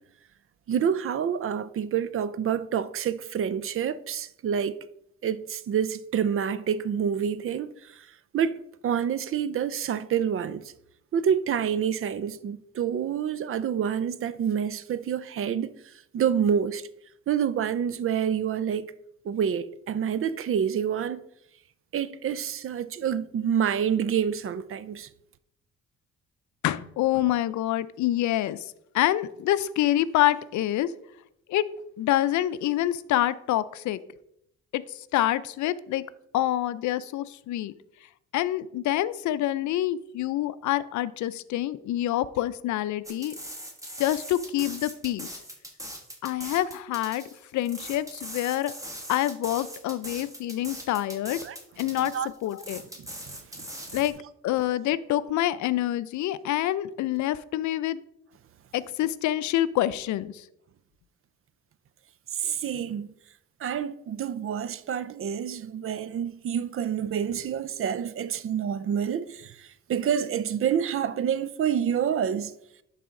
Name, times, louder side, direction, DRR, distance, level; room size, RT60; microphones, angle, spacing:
voice 1, 0.7-4.7 5.2-7.7 8.3-8.6 8.8-10.6 11.1-15.7 16.1-16.8 17.3-18.9 19.3-21.2 21.9-25.1 51.4-51.6 52.0-52.3 53.3-53.7 62.4-63.1 63.6-69.5 69.9-72.5, right 8 dB, 45° right, 0.5 m, -27 dB
voice 2, 26.6-28.6 28.9-30.9 31.5-31.7 32.0-34.0 34.7-34.8 35.1-36.0 36.3-37.7 38.3-43.3 44.0-45.3 46.2-47.2 47.5-48.7 49.1-51.4 51.8-52.1 52.4-52.8 53.9-54.1 54.4-58.0 58.7-60.3, left 13 dB, 70° left, 0.5 m, -26 dB
sound 1, 43.0-54.1, equal, 10° right, 1.6 m, -41 dB
11.0 x 4.2 x 3.7 m
cardioid pair, 90°, 30 cm